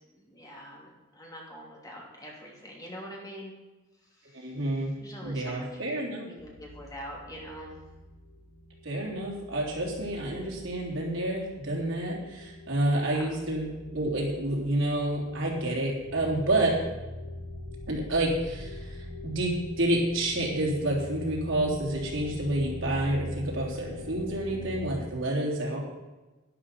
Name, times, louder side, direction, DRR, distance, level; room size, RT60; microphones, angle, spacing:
voice 1, 0.1-3.5 4.1-4.5 5.0-7.8 13.0-13.3, equal, 20° left, -2 dB, 2.9 m, -44 dB
voice 2, 4.3-5.0 5.2-6.3 8.8-16.8 17.9-18.9 19.2-25.8, right 1 dB, 75° right, -2 dB, 3.5 m, -29 dB
sound 1, 6.4-25.0, left 1 dB, 50° left, 5.3 m, -43 dB
11.5 x 11.0 x 5.5 m, 1.1 s
head